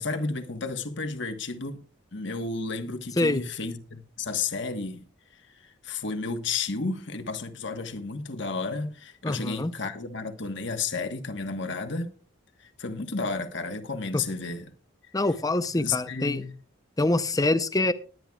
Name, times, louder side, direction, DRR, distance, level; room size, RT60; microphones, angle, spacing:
voice 1, 0.0-1.8 2.1-5.0 5.8-12.1 12.8-14.6 15.8-16.5, left 4 dB, 55° left, 1.3 m, -32 dB
voice 2, 9.2-9.7 14.1-14.2 15.1-16.4 17.0-17.9, left 2 dB, 15° left, 0.6 m, -25 dB
20.0 x 10.0 x 2.3 m
head